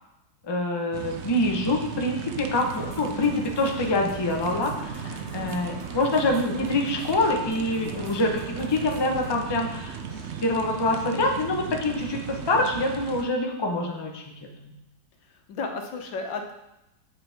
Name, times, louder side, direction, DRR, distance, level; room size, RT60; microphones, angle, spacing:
voice 1, 0.4-14.2 14.6-14.7, left 2 dB, 20° left, 1 dB, 0.7 m, -26 dB
sound 1, 0.9-13.3, right 7 dB, 75° right, 0.6 m, -36 dB
sound 2, 2.5-9.3, equal, 15° right, 2.2 m, -45 dB
voice 2, 5.4-5.7 12.6-12.7 15.2-16.5, left 4 dB, 85° left, 4 dB, 1.7 m, -34 dB
8.7 x 7.2 x 3.5 m, 0.90 s
omnidirectional pair, 2.0 m